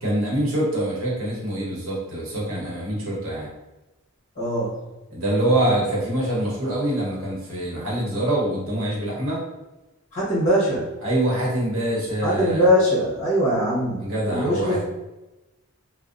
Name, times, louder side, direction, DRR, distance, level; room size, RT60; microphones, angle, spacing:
voice 1, 0.0-3.5 5.1-9.4 11.0-12.7 14.0-14.8, right 1 dB, 70° right, -4 dB, 0.9 m, -25 dB
voice 2, 4.4-4.8 10.1-10.9 12.2-14.8, equal, 35° left, -7 dB, 0.9 m, -21 dB
2.6 x 2.0 x 2.4 m, 1.0 s
head